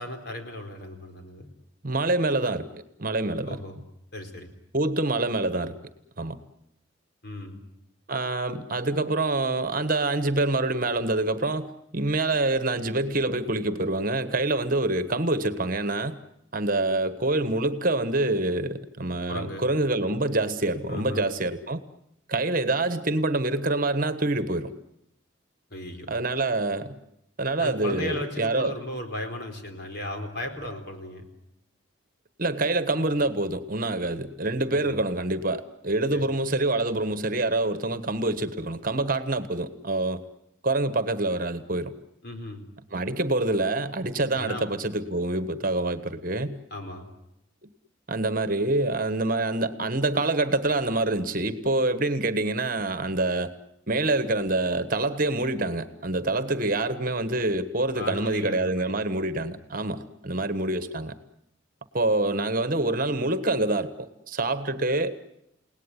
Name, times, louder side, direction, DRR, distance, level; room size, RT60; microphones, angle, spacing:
voice 1, 0.0-1.5 3.4-3.8 4.1-4.5 7.2-7.6 19.3-19.6 20.9-21.3 25.7-26.1 27.6-31.3 34.7-35.0 36.1-36.2 42.2-42.6 44.3-44.7 46.7-47.1 57.9-58.9, left 1 dB, 55° left, 5 dB, 4.3 m, -36 dB
voice 2, 1.8-3.6 4.7-5.8 6.2-6.4 8.1-16.1 16.5-21.8 22.3-24.7 26.1-26.9 27.4-28.7 32.4-40.2 40.6-41.9 42.9-46.6 48.1-53.5 53.9-61.1 61.9-65.2, right 2 dB, 45° right, 11 dB, 1.4 m, -26 dB
30.0 x 18.5 x 10.0 m, 0.83 s
head